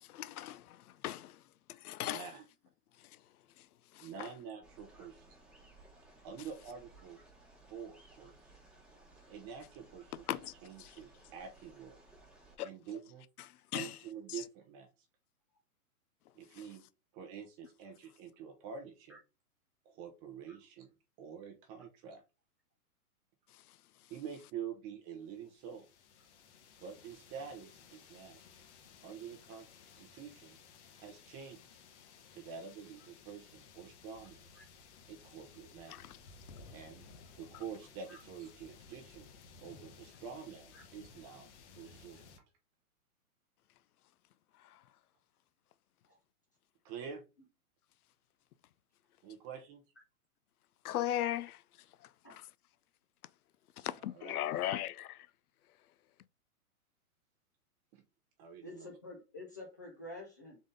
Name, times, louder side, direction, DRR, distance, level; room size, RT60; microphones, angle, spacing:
voice 1, 0.0-1.4 1.7-2.2 3.0-3.2 3.6-3.7 3.9-4.3 10.3-10.5 10.8-10.9 12.6-12.7 13.7-14.0 16.5-16.6 23.5-23.6 35.9-36.1 44.6-44.8 50.8-51.6 52.0-52.5 53.8-55.3, left 13 dB, 75° left, 0.5 m, -38 dB
voice 2, 2.0-2.5 4.0-5.4 6.2-7.2 7.7-8.5 9.3-12.0 12.6-13.3 13.7-14.9 16.3-16.8 17.1-19.2 19.8-22.2 24.1-25.9 26.8-28.4 29.0-29.7 30.0-30.6 31.0-31.8 32.3-34.5 35.1-36.0 36.7-37.0 37.4-39.3 39.6-42.3 46.8-47.2 49.2-49.8 54.0-54.5 57.9-58.0 58.4-59.0, right 7 dB, 20° right, 0.6 m, -47 dB
sound 1, 4.6-12.6, right 2 dB, ahead, 1.2 m, -60 dB
sound 2, 25.3-42.4, left 5 dB, 50° left, 1.1 m, -58 dB
voice 3, 58.6-60.6, left 1 dB, 15° left, 0.3 m, -48 dB
4.0 x 3.6 x 3.6 m
hypercardioid pair, 135°, 44 cm